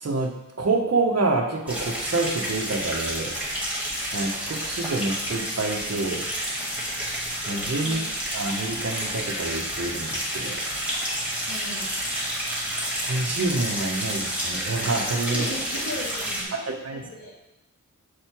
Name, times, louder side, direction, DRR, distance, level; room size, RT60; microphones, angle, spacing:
voice 1, 0.0-3.4 4.1-6.3 7.5-8.0 8.3-10.6 13.1-15.5 16.7-17.0, right 3 dB, 50° right, 1 dB, 1.1 m, -27 dB
sound 1, 1.7-16.4, equal, 5° right, 2.1 m, -30 dB
voice 2, 11.5-11.8 15.3-17.3, left 2 dB, 85° left, -8 dB, 2.1 m, -37 dB
6.5 x 4.7 x 4.5 m, 0.94 s
wide cardioid pair, 70°, 31 cm